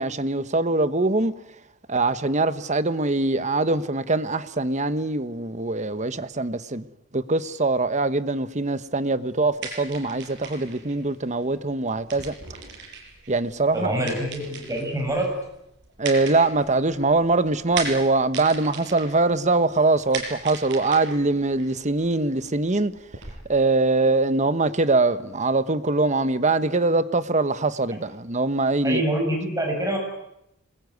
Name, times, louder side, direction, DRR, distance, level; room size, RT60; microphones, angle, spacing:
voice 1, 0.0-1.3 1.9-6.9 7.1-12.3 13.3-14.0 16.0-22.9 23.5-29.0, right 3 dB, 35° right, 1.1 m, -23 dB
sound 1, 9.3-23.3, right 4 dB, 55° right, 7.0 m, -39 dB
voice 2, 13.7-15.4 28.8-30.0, right 1 dB, 15° right, 7.1 m, -25 dB
26.5 x 21.0 x 9.5 m
head